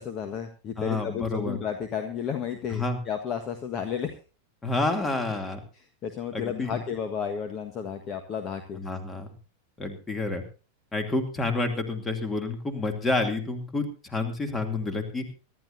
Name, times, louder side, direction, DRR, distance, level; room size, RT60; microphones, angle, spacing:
voice 1, 0.0-4.2 6.0-8.8, left 7 dB, 30° left, 5 dB, 1.5 m, -32 dB
voice 2, 0.8-1.6 2.7-3.0 4.6-5.6 6.3-6.8 8.7-9.3 9.8-10.4 10.9-15.3, left 2 dB, 15° left, 7 dB, 2.6 m, -29 dB
24.5 x 12.0 x 2.7 m, 0.35 s
figure-of-eight pair, 90°, 0 cm